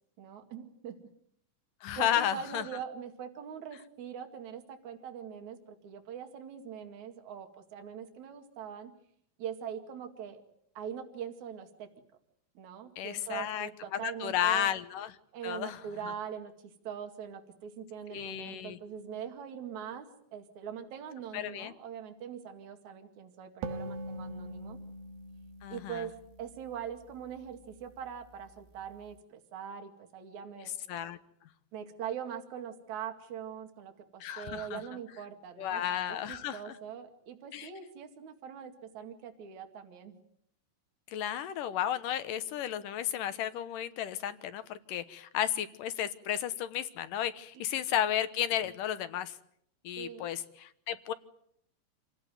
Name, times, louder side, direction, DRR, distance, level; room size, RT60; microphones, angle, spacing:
voice 1, 0.2-1.0 1.9-8.9 9.4-10.4 10.7-11.9 12.5-14.7 15.3-24.8 25.7-30.7 31.7-40.2 47.5-47.6 50.0-50.3, right 8 dB, 55° right, 5 dB, 3.4 m, -42 dB
voice 2, 1.8-2.6 13.0-15.2 15.4-16.1 18.1-18.8 21.3-21.7 25.6-26.1 30.6-31.2 34.2-34.8 35.6-36.8 37.5-37.7 41.1-49.4 49.8-51.1, left 10 dB, 70° left, 12 dB, 2.6 m, -33 dB
sound 1, 23.6-27.1, right 2 dB, 75° right, 3.2 m, -42 dB
27.5 x 17.5 x 9.3 m, 0.72 s
omnidirectional pair, 4.2 m